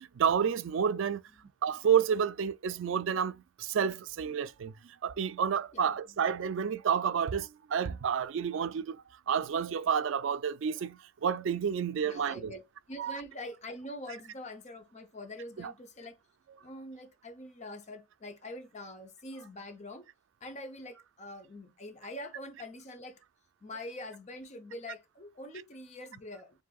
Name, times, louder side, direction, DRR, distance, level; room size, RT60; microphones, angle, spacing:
voice 1, 0.0-1.2 1.6-4.7 5.0-12.5 13.0-13.2 15.6-15.7, right 7 dB, 75° right, 0.3 m, -30 dB
voice 2, 5.7-6.2 12.0-16.2 16.6-20.1 20.4-23.2 23.6-26.6, left 1 dB, 35° left, 0.6 m, -44 dB
7.3 x 2.6 x 2.3 m
head